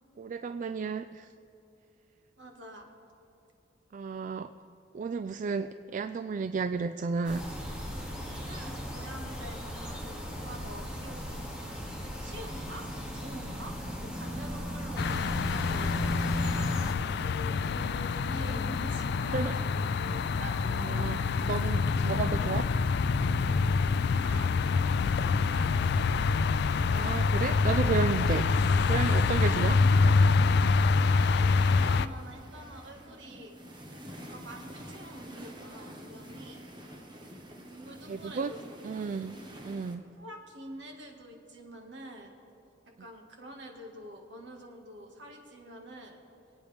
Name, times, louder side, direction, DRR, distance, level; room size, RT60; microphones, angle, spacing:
voice 1, 0.2-1.3 3.9-4.5 4.9-7.5 19.3-19.5 20.7-22.7 26.9-28.5 28.9-29.8 38.1-38.5 38.8-39.4 39.6-40.0, right 5 dB, 45° right, 10 dB, 0.3 m, -32 dB
voice 2, 2.4-2.9 8.4-11.9 12.2-12.9 13.1-16.6 17.2-20.6 21.2-21.4 24.1-26.0 29.3-29.5 29.8-29.9 31.0-33.5 34.3-36.7 37.7-39.0 40.2-42.4 42.8-46.2, right 1 dB, 65° right, 1 dB, 1.9 m, -47 dB
sound 1, 7.2-16.9, equal, 5° right, 2.4 m, -36 dB
sound 2, 15.0-32.1, left 4 dB, 60° left, 0.4 m, -26 dB
sound 3, 28.0-39.9, equal, 25° right, 1.4 m, -47 dB
26.0 x 8.9 x 3.5 m, 2.7 s
head